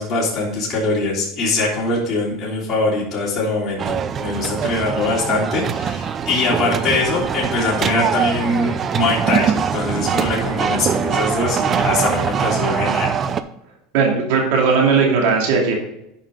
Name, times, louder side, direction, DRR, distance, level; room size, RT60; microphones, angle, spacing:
voice 1, 0.0-13.1, left 2 dB, 30° left, -5 dB, 3.3 m, -22 dB
sound 1, 3.8-13.4, right 7 dB, 35° right, 0.6 m, -22 dB
voice 2, 13.9-15.8, right 5 dB, 75° right, 0 dB, 2.7 m, -17 dB
9.4 x 5.6 x 3.8 m, 0.82 s
supercardioid pair, 110°, 0 cm